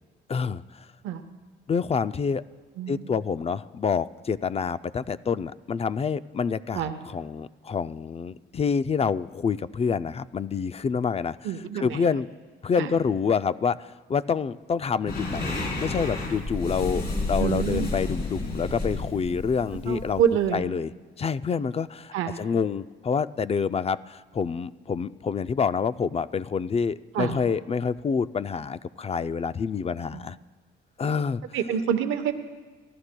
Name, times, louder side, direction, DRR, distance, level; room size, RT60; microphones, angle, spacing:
voice 1, 0.3-0.9 1.7-2.4 2.9-11.4 11.7-12.3 12.6-20.2 20.5-20.9 21.2-30.4 31.0-31.4, left 6 dB, 30° left, 14 dB, 0.4 m, -27 dB
voice 2, 2.8-3.1 6.7-7.0 11.4-12.0 12.8-12.9 17.4-17.9 19.9-20.6 22.1-22.4 27.1-27.4 30.1-30.3 31.5-32.3, right 8 dB, 90° right, 8 dB, 0.9 m, -27 dB
sound 1, 15.1-20.6, left 2 dB, 55° left, 3.9 m, -31 dB
27.5 x 13.0 x 2.2 m, 1.3 s
cardioid pair, 90°, 20 cm